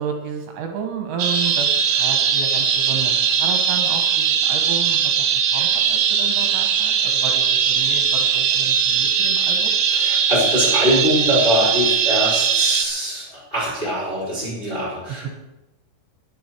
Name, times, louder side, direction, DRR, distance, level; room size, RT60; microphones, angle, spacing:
voice 1, 0.0-5.2 5.5-9.7, right 6 dB, 70° right, 3 dB, 3.3 m, -31 dB
sound 1, 1.2-12.9, right 7 dB, 90° right, 2.2 m, -19 dB
voice 2, 9.9-15.3, equal, 10° left, -6 dB, 4.9 m, -22 dB
21.0 x 8.0 x 4.7 m, 1.0 s
omnidirectional pair, 6.0 m